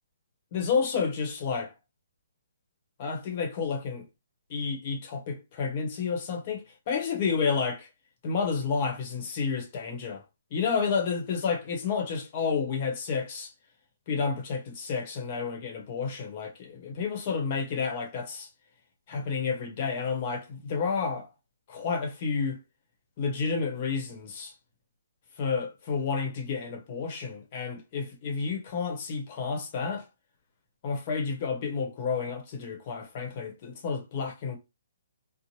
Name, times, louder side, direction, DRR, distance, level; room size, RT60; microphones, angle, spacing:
voice 1, 0.5-1.7 3.0-4.0 4.5-7.9 8.2-10.2 10.5-13.5 14.1-18.5 19.1-21.3 21.7-22.6 23.2-24.5 25.4-30.1 30.8-34.6, left 5 dB, 35° left, 0.9 m, -30 dB
2.8 x 2.0 x 3.1 m
hypercardioid pair, 155°, 0 cm